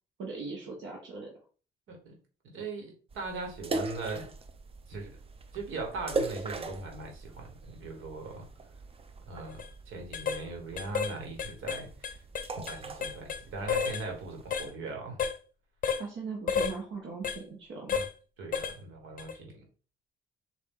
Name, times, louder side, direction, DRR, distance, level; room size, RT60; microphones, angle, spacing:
voice 1, 0.2-1.3 16.0-18.0, right 4 dB, 70° right, -1 dB, 1.0 m, -39 dB
voice 2, 2.4-4.3 4.9-5.2 5.5-8.5 9.3-12.2 12.7-15.2 17.9-18.0 18.4-19.6, right 3 dB, 85° right, 1 dB, 1.4 m, -40 dB
sound 1, 3.1-14.7, right 2 dB, 30° right, 0.5 m, -40 dB
sound 2, 9.5-9.7 10.1-10.4 10.8-11.1 11.4-13.4 13.7-14.0 14.5-14.7 15.2-15.4 15.8-16.0 16.5-16.8 17.2-17.4 17.9-18.1 18.5-18.8 19.2-19.3, left 6 dB, 45° left, 0.6 m, -31 dB
3.9 x 2.5 x 3.6 m, 0.38 s
cardioid pair, 90°, 20 cm